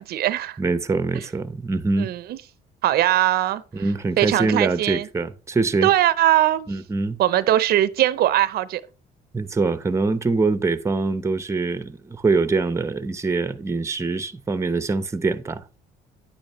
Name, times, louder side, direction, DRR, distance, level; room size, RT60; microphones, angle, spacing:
voice 1, 0.0-0.6 2.0-2.2 2.8-3.6 4.2-5.1 5.8-6.7 7.2-8.8, right 13 dB, 65° right, 0.7 m, -20 dB
voice 2, 0.6-2.1 3.7-5.9 6.7-7.2 9.3-15.8, right 3 dB, 15° right, 0.8 m, -24 dB
10.0 x 8.8 x 3.1 m
cardioid pair, 110°, 17 cm